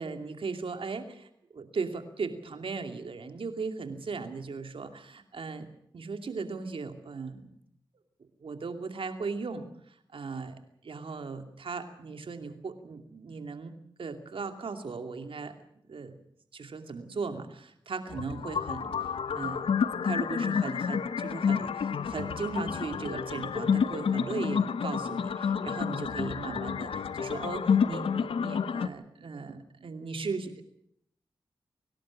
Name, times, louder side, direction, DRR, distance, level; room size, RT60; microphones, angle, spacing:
voice 1, 0.0-5.7 5.9-7.4 8.2-15.5 15.9-16.2 16.5-19.7 20.0-30.6, right 4 dB, 75° right, 7 dB, 2.6 m, -37 dB
sound 1, 18.1-28.9, left 6 dB, 85° left, 0.8 m, -29 dB
24.5 x 12.0 x 9.8 m, 0.71 s
cardioid pair, 45°, 9 cm